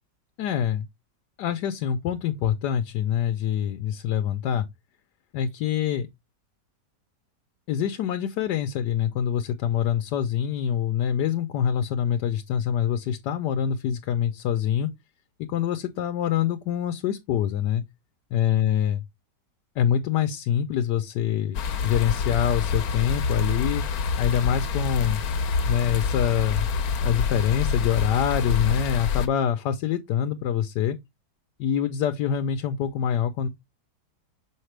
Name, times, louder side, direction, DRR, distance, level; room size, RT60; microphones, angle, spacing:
voice 1, 0.4-0.9 1.4-4.7 5.3-6.1 7.7-14.9 15.5-17.8 18.3-19.0 19.8-23.8 24.2-25.2 25.7-26.7 27.0-31.0 31.6-33.5, left 9 dB, 75° left, 1.3 m, -25 dB
sound 1, 21.5-29.3, left 5 dB, 60° left, 1.2 m, -26 dB
6.6 x 5.0 x 3.2 m
omnidirectional pair, 1.9 m